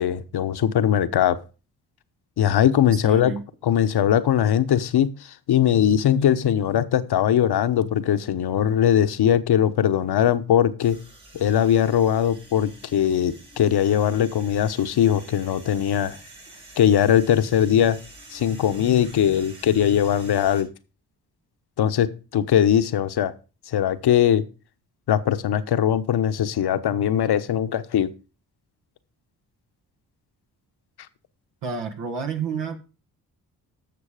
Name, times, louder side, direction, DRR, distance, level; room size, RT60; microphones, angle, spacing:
voice 1, 0.0-1.4 2.4-3.3 3.6-11.0 11.3-16.2 16.8-18.0 18.3-20.7 21.8-23.3 23.7-24.4 25.1-28.1, left 10 dB, 60° left, 12 dB, 1.1 m, -20 dB
voice 2, 2.9-3.4 31.6-32.8, right 5 dB, 65° right, 4 dB, 1.8 m, -30 dB
sound 1, 10.8-20.6, right 2 dB, 90° right, 6.0 m, -47 dB
12.0 x 6.9 x 5.0 m, 0.34 s
hypercardioid pair, 45°, 44 cm